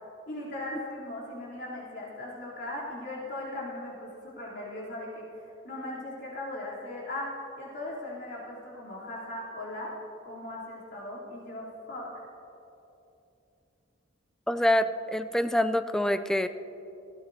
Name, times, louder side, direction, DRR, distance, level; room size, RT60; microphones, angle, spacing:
voice 1, 0.3-9.9 10.2-12.2, left 1 dB, 55° left, -7 dB, 3.1 m, -38 dB
voice 2, 14.5-16.5, left 1 dB, 5° left, 10 dB, 0.3 m, -26 dB
19.5 x 14.5 x 2.7 m, 2.9 s
head